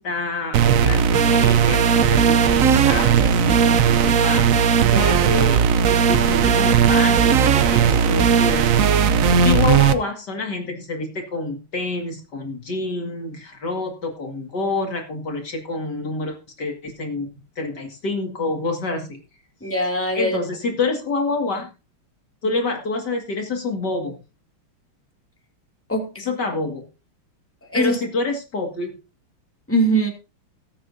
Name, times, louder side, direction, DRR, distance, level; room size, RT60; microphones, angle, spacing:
voice 1, 0.0-4.4 5.3-8.9 9.4-17.3 17.6-19.2 20.1-21.7 22.4-24.2 26.2-26.8 27.7-29.0, left 3 dB, 50° left, 2.7 m, -27 dB
sound 1, 0.5-9.9, right 7 dB, 70° right, 0.8 m, -17 dB
voice 2, 4.8-5.3 19.6-20.4 25.9-26.1 27.7-28.0 29.7-30.1, right 1 dB, 5° left, 2.5 m, -22 dB
19.0 x 8.7 x 2.7 m
omnidirectional pair, 2.4 m